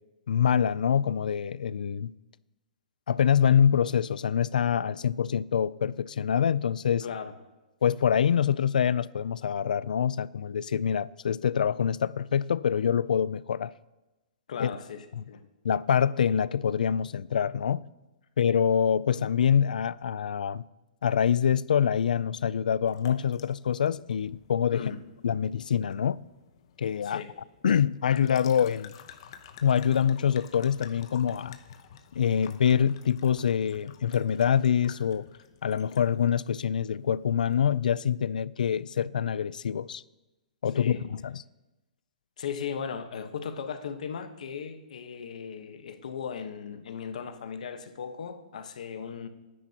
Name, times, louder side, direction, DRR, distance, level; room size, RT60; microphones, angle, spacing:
voice 1, 0.3-2.1 3.1-7.0 7.8-13.7 14.6-14.7 15.2-15.3 15.6-17.8 18.4-20.6 21.0-24.9 25.2-26.2 26.8-27.2 27.6-28.9 29.6-31.6 32.2-35.3 35.6-40.0 40.6-41.4, left 8 dB, 80° left, 0.4 m, -25 dB
voice 2, 7.0-7.3 14.5-15.5 24.7-25.0 27.0-27.3 40.7-41.0 42.4-49.3, left 7 dB, 60° left, 1.2 m, -37 dB
sound 1, 22.9-37.9, left 8 dB, 35° left, 0.9 m, -51 dB
27.5 x 10.0 x 2.9 m
hypercardioid pair, 175°, 4 cm